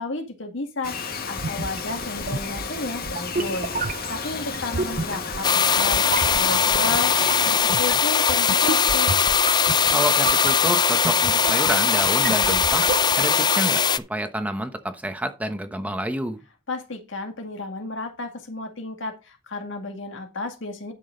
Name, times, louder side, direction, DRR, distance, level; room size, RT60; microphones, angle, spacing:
voice 1, 0.0-9.1 16.7-20.9, left 2 dB, 65° left, 2.0 m, -33 dB
Bird vocalization bird call bird song, 0.8-7.6, left 5 dB, 50° left, 1.5 m, -33 dB
sound 1, 1.4-13.4, right 4 dB, 45° right, 0.6 m, -32 dB
sound 2, 5.4-14.0, left 6 dB, 20° left, 0.4 m, -20 dB
voice 2, 9.9-12.9 13.1-16.4, right 1 dB, 10° right, 1.0 m, -29 dB
10.5 x 6.3 x 3.9 m
head